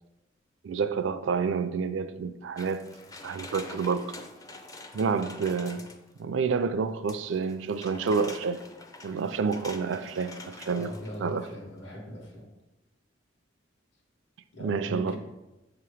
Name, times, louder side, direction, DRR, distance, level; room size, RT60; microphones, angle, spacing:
voice 1, 0.6-2.9 3.2-4.1 4.9-5.9 6.2-8.6 9.0-10.9 11.2-11.5 14.6-15.2, right 5 dB, 70° right, 0.4 m, -29 dB
sound 1, 2.6-6.2 7.1-11.5 11.8-11.9, left 2 dB, 20° left, 0.4 m, -46 dB
voice 2, 10.7-12.5 14.5-15.2, equal, 65° left, 1.2 m, -40 dB
7.2 x 2.9 x 4.8 m
head